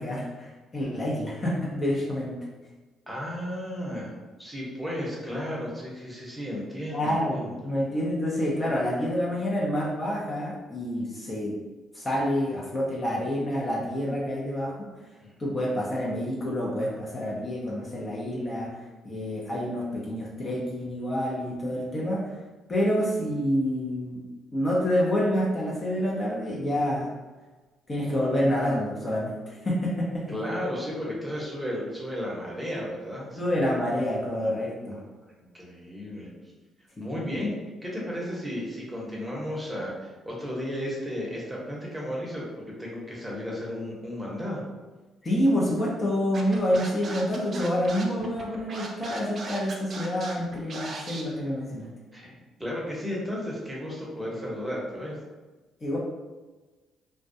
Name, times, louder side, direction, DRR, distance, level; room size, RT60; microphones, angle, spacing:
voice 1, 0.0-2.3 6.9-11.6 11.9-14.9 15.4-22.4 22.7-24.2 24.5-27.1 27.9-30.3 33.3-35.0 37.0-37.3 45.2-51.9 55.8-56.0, equal, 30° left, -4 dB, 0.6 m, -28 dB
voice 2, 3.1-4.1 4.4-7.4 15.2-15.3 30.3-33.4 35.4-36.3 37.0-37.5 37.8-44.6 52.1-52.3 52.6-55.2, equal, 10° right, -4 dB, 0.8 m, -34 dB
Scratching (performance technique), 46.3-51.2, right 3 dB, 50° right, 0.4 m, -38 dB
2.2 x 2.2 x 2.6 m, 1.2 s
supercardioid pair, 75°, 0 cm